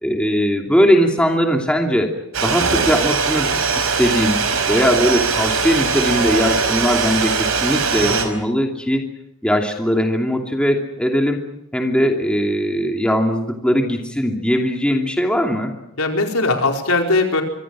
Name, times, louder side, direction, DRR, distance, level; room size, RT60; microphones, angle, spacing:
voice 1, 0.0-2.1 2.4-3.5 3.8-4.3 4.7-9.0 9.4-11.4 11.7-15.7, equal, 5° left, 2 dB, 2.7 m, -19 dB
sound 1, 2.3-8.3, right 5 dB, 90° right, 4.6 m, -20 dB
voice 2, 16.0-17.4, left 2 dB, 85° left, 3 dB, 4.6 m, -20 dB
25.0 x 24.5 x 6.2 m, 0.82 s
head